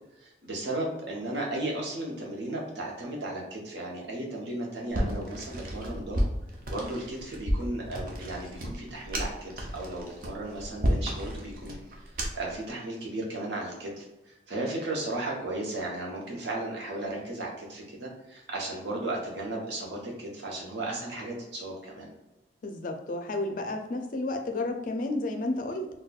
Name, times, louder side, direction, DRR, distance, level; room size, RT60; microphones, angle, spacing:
voice 1, 0.1-6.3 6.7-11.8 12.0-22.1, right 2 dB, 70° right, -2 dB, 0.9 m, -35 dB
sound 1, 4.9-12.6, equal, 50° right, 0.6 m, -32 dB
voice 2, 22.6-25.9, left 2 dB, 45° left, 5 dB, 0.4 m, -31 dB
4.2 x 2.2 x 2.3 m, 0.98 s
head